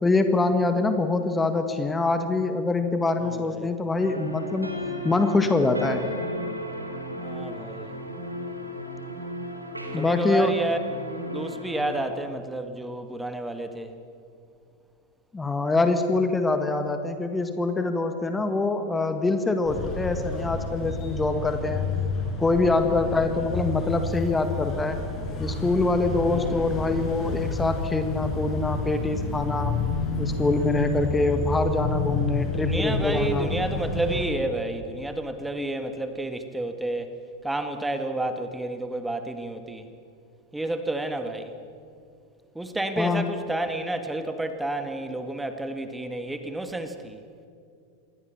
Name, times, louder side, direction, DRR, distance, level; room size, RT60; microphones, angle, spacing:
voice 1, 0.0-4.7 5.0-6.1 9.9-10.5 15.3-21.9 22.4-25.0 25.4-29.8 30.2-33.5 43.0-43.2, left 3 dB, 10° left, 8 dB, 1.8 m, -24 dB
voice 2, 3.2-3.7 7.2-7.9 10.0-13.9 23.3-23.5 26.2-27.0 31.1-31.6 32.6-37.1 37.4-39.9 40.5-41.5 42.6-47.2, right 2 dB, 5° right, 8 dB, 1.8 m, -31 dB
sound 1, 4.0-12.1, equal, 85° right, 4.1 m, -35 dB
sound 2, 19.6-34.2, left 3 dB, 25° left, 6.2 m, -30 dB
27.5 x 21.5 x 7.2 m, 2.4 s
figure-of-eight pair, 90°, 0 cm